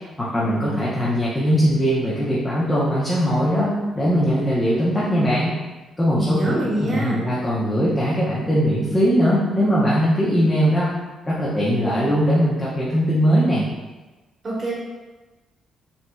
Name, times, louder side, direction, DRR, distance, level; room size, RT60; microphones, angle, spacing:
voice 1, 0.2-5.5 6.0-10.9 11.2-13.6, equal, 20° left, -7 dB, 0.9 m, -20 dB
voice 2, 6.1-7.2 14.4-14.7, right 1 dB, 35° right, -5 dB, 1.2 m, -25 dB
5.4 x 3.0 x 2.3 m, 1.2 s
cardioid pair, 90°, 0 cm